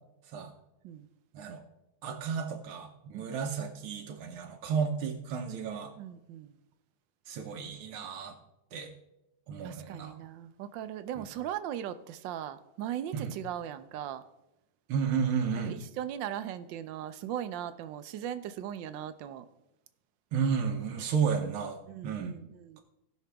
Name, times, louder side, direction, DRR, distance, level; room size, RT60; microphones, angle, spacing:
voice 1, 2.0-5.9 7.3-8.4 8.7-8.9 9.5-10.2 11.2-11.3 13.1-13.3 14.9-15.8 20.3-22.4, right 6 dB, 85° right, 2 dB, 1.8 m, -32 dB
voice 2, 6.0-6.5 9.6-14.2 15.7-19.4 21.9-22.8, right 10 dB, 70° right, 12 dB, 1.2 m, -38 dB
17.5 x 5.9 x 3.4 m, 0.91 s
omnidirectional pair, 2.3 m